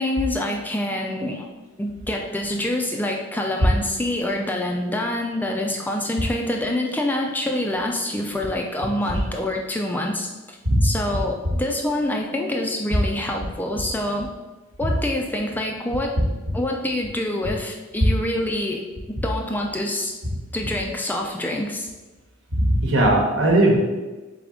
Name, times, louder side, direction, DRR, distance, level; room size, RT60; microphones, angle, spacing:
voice 1, 0.0-1.5 1.8-10.6 10.8-14.3 14.8-16.2 16.5-20.1 20.5-21.9, left 1 dB, 10° left, 1 dB, 0.3 m, -26 dB
voice 2, 22.5-23.8, right 1 dB, 65° right, -1 dB, 1.1 m, -18 dB
4.1 x 3.5 x 3.7 m, 1.2 s
head